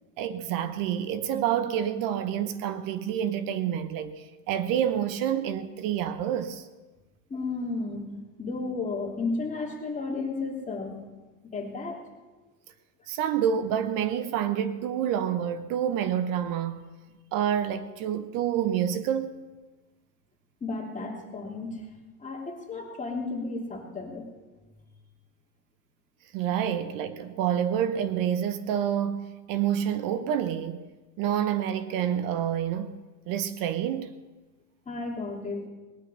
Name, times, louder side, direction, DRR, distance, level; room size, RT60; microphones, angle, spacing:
voice 1, 0.2-6.7 13.1-16.8 17.3-19.4 26.3-30.8 31.2-33.0 33.3-34.1, right 9 dB, 45° right, 1.0 m, -28 dB
voice 2, 7.3-8.0 8.4-11.0 11.4-12.0 20.6-21.9 22.2-24.3 34.9-35.6, left 3 dB, 15° left, 2.9 m, -33 dB
19.0 x 10.5 x 5.5 m
supercardioid pair, 115°, 45 cm